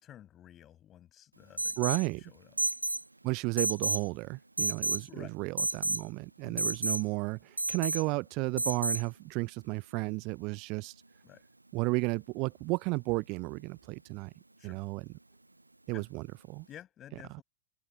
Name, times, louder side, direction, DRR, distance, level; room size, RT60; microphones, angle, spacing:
voice 1, 0.0-2.6 5.1-5.4 6.4-6.7 11.2-11.4 14.6-14.8 15.9-16.0 16.7-17.4, left 11 dB, 30° left, 6.6 m, -52 dB
Alarm, 1.6-2.1 2.6-3.0 3.6-4.1 4.6-5.0 5.6-6.0 6.6-7.0 7.6-8.0 8.6-9.0, right 2 dB, 85° right, 0.7 m, -30 dB
voice 2, 1.8-2.2 3.2-10.9 11.7-14.3 14.6-15.1 15.9-16.7, right 27 dB, 40° right, 0.7 m, -33 dB
figure-of-eight pair, 90°, 0 cm